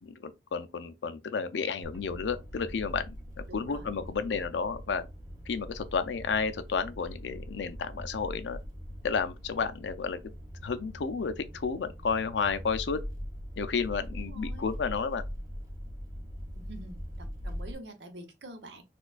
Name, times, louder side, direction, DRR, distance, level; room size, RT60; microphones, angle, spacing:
voice 1, 0.0-3.2 3.5-5.1 5.5-8.6 9.0-10.2 10.6-13.0 13.6-15.2, left 5 dB, 85° left, 0.5 m, -31 dB
sound 1, 1.8-17.7, equal, 20° right, 0.7 m, -42 dB
voice 2, 3.5-3.9 14.1-14.7 16.5-18.8, right 1 dB, 80° right, 0.8 m, -47 dB
4.3 x 2.3 x 2.4 m
head